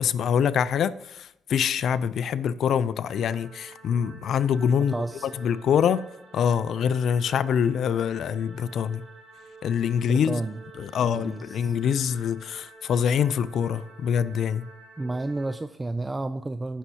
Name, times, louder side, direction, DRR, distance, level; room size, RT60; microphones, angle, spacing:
voice 1, 0.0-4.9 5.2-6.0 6.3-9.0 9.6-10.4 10.8-14.7, left 8 dB, 65° left, 0.4 m, -25 dB
sound 1, 3.1-15.5, right 3 dB, 65° right, 3.8 m, -49 dB
voice 2, 4.9-5.3 10.1-10.6 11.0-11.7 15.0-16.8, right 2 dB, 20° right, 0.3 m, -31 dB
15.5 x 5.5 x 2.8 m
cardioid pair, 90°, 0 cm